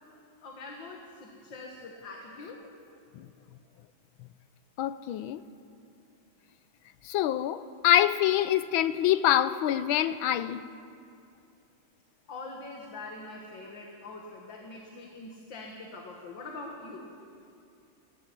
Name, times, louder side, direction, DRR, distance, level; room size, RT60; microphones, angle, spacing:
voice 1, 0.1-2.6 12.3-17.1, left 3 dB, 60° left, 2.3 m, -43 dB
voice 2, 4.8-5.4 7.0-10.6, left 12 dB, 80° left, 1.4 m, -25 dB
18.5 x 14.5 x 9.8 m
omnidirectional pair, 2.3 m